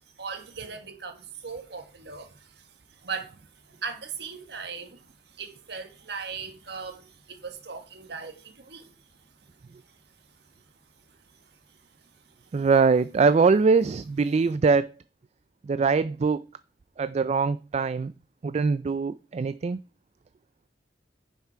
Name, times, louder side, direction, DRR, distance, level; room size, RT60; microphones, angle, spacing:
voice 1, 0.2-8.9, right 5 dB, 65° right, 1.5 m, -39 dB
voice 2, 12.5-14.9 15.6-16.4 17.0-18.1 18.4-19.8, right 4 dB, 40° right, 0.3 m, -22 dB
9.9 x 5.8 x 4.6 m
head